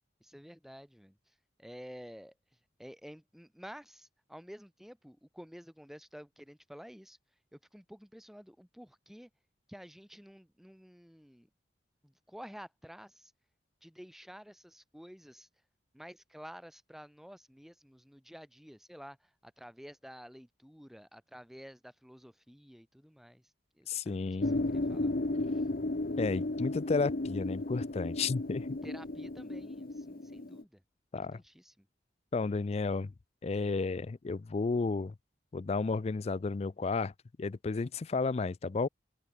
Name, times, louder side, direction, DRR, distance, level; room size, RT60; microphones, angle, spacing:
voice 1, 0.2-1.2 1.6-2.3 2.8-7.2 7.5-9.3 9.7-11.5 12.0-13.3 13.8-15.5 15.9-23.4 23.8-25.2 28.8-30.8 31.2-31.9, equal, ahead, 1.8 m, -51 dB
voice 2, 23.9-24.6 26.2-28.8 31.1-31.4 32.3-33.1 33.4-35.1 35.5-37.1 37.4-38.9, left 4 dB, 35° left, 0.4 m, -32 dB
sound 1, 24.4-30.6, left 2 dB, 50° left, 1.0 m, -34 dB
open air
head